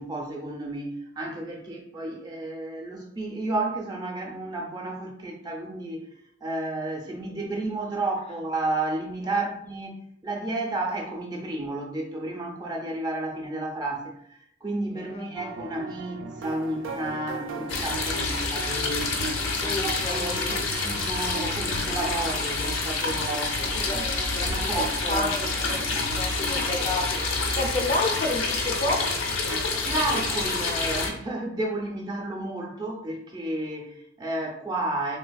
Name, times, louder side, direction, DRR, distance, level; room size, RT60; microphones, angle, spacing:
voice 1, 0.0-6.1 6.4-9.9 10.2-23.8 24.4-25.3 29.8-35.2, right 2 dB, 20° right, 0 dB, 0.5 m, -32 dB
voice 2, 14.9-15.5 19.6-20.6 23.6-24.6 25.1-27.2 27.5-29.0, left 2 dB, 30° left, 2 dB, 0.3 m, -31 dB
sound 1, 15.3-30.4, right 4 dB, 80° right, 0.5 m, -39 dB
sound 2, 17.7-31.1, left 3 dB, 80° left, 0.6 m, -28 dB
3.3 x 3.3 x 2.2 m, 0.72 s
head